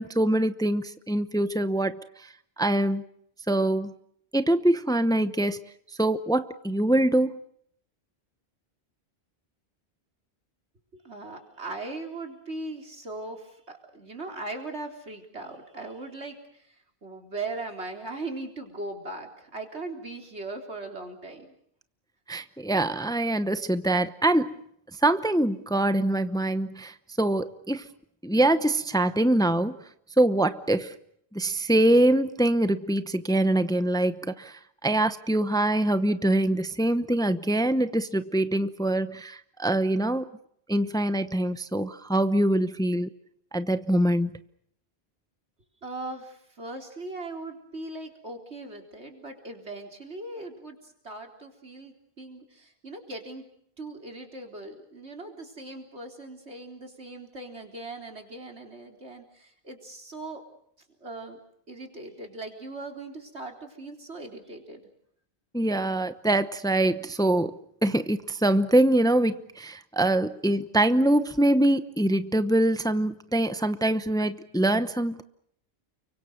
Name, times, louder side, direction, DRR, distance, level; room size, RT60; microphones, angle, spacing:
voice 1, 0.0-2.3 2.6-3.0 3.5-3.9 4.3-5.6 6.0-7.3 22.3-24.6 25.0-27.9 28.2-29.8 30.2-30.9 31.3-40.3 40.7-43.1 43.5-44.3 65.5-75.2, right 1 dB, 5° left, 12 dB, 0.8 m, -24 dB
voice 2, 10.9-16.6 17.0-21.5 45.8-53.5 53.8-60.4 61.0-61.4 61.7-64.8, right 2 dB, 90° right, 3 dB, 4.1 m, -39 dB
30.0 x 24.0 x 6.5 m, 0.70 s
omnidirectional pair, 1.1 m